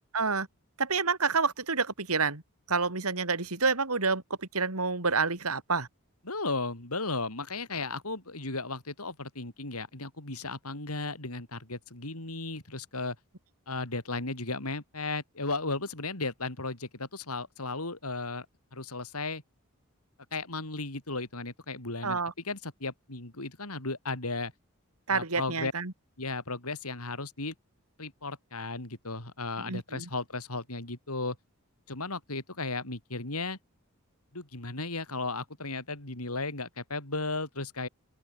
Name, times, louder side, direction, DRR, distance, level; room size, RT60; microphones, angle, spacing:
voice 1, 0.1-0.5 0.8-2.4 2.7-5.9 22.0-22.3 25.1-25.9 29.6-30.1, right 4 dB, 80° right, 3.0 m, -28 dB
voice 2, 6.3-13.2 13.7-18.5 18.7-19.4 20.3-22.2 22.4-24.5 25.1-25.7 26.2-27.5 28.0-31.4 31.9-33.6 34.3-37.9, left 3 dB, 85° left, 5.2 m, -35 dB
open air
head